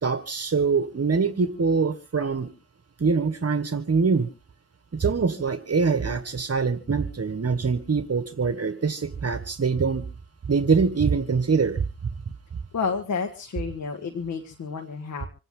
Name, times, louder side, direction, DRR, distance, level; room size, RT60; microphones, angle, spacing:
voice 1, 0.0-2.5 3.0-4.3 4.9-10.1 10.5-11.8, right 5 dB, 55° right, 9 dB, 1.7 m, -24 dB
voice 2, 12.7-15.3, left 5 dB, 90° left, 4 dB, 1.6 m, -30 dB
26.5 x 9.1 x 3.9 m, 0.33 s
cardioid pair, 50°, 29 cm